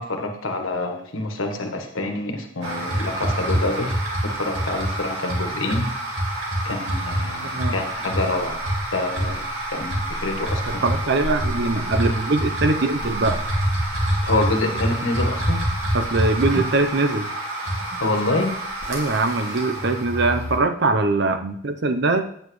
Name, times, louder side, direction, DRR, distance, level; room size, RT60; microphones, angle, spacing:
voice 1, 0.0-4.0 4.2-5.9 6.6-8.6 8.9-10.8 14.2-15.6 18.0-18.5, left 2 dB, 90° left, 4 dB, 1.3 m, -26 dB
sound 1, 2.6-20.6, right 1 dB, 75° right, 2.1 m, -26 dB
voice 2, 10.7-13.4 15.9-17.3 18.9-22.3, right 3 dB, 60° right, 8 dB, 0.7 m, -22 dB
8.8 x 8.3 x 3.2 m, 0.65 s
head